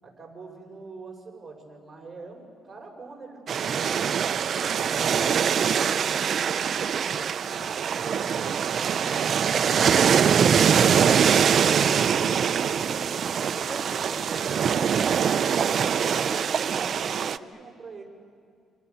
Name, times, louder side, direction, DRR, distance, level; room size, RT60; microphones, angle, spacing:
voice 1, 0.0-3.8 6.7-11.9 16.6-18.0, right 3 dB, 30° right, 1 dB, 6.2 m, -44 dB
sound 1, 3.5-17.4, right 7 dB, 55° right, 0.6 m, -23 dB
voice 2, 11.6-15.0 15.5-16.7 17.3-17.7, left 1 dB, 20° left, 3 dB, 2.2 m, -45 dB
29.0 x 27.5 x 7.1 m, 2.2 s
cardioid pair, 90°, 0 cm